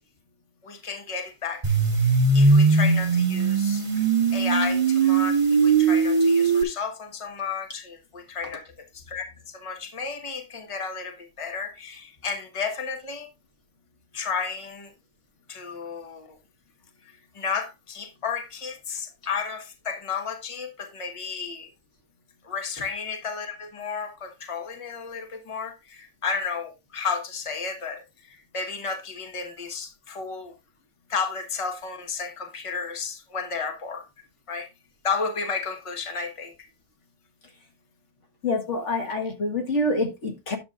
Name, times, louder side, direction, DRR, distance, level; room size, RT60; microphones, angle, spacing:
voice 1, 0.6-13.3 14.1-14.9 15.5-16.4 17.3-21.7 22.4-30.5 31.1-34.1 34.5-34.7 35.0-36.7, left 5 dB, 25° left, 1.2 m, -33 dB
sound 1, 1.6-6.6, right 4 dB, 35° right, 2.3 m, -20 dB
voice 2, 38.4-40.6, left 2 dB, 75° left, 1.8 m, -26 dB
10.5 x 7.0 x 2.5 m
omnidirectional pair, 1.3 m